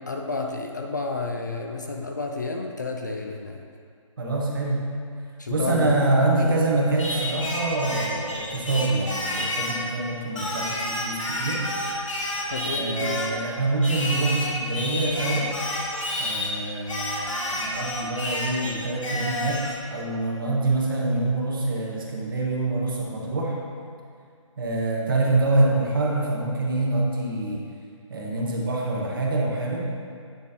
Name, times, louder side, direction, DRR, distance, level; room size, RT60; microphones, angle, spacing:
voice 1, 0.1-3.6 5.4-6.6 12.5-13.3, left 3 dB, 35° left, 2 dB, 0.3 m, -31 dB
voice 2, 4.2-4.8 5.5-11.7 12.7-15.5 16.2-23.6 24.6-27.6 28.1-29.9, right 2 dB, 40° right, -2 dB, 1.0 m, -25 dB
Singing, 7.0-9.8 10.4-13.4 13.8-16.5 16.9-19.8, left 1 dB, 75° left, 1.5 m, -30 dB
9.2 x 5.2 x 2.7 m, 2.3 s
hypercardioid pair, 175°, 17 cm